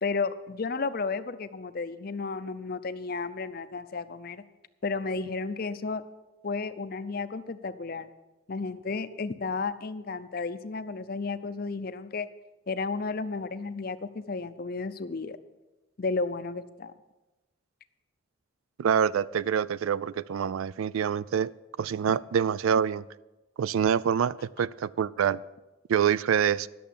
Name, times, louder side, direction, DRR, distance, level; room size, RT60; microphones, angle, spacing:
voice 1, 0.0-4.4 4.8-6.0 6.4-8.1 8.5-12.3 12.7-15.4 16.0-16.9 22.0-22.1, left 4 dB, 45° left, 0.5 m, -33 dB
voice 2, 18.8-21.5 21.8-23.0 23.6-25.4 25.9-26.7, right 8 dB, 80° right, 0.3 m, -26 dB
11.0 x 6.9 x 8.4 m
head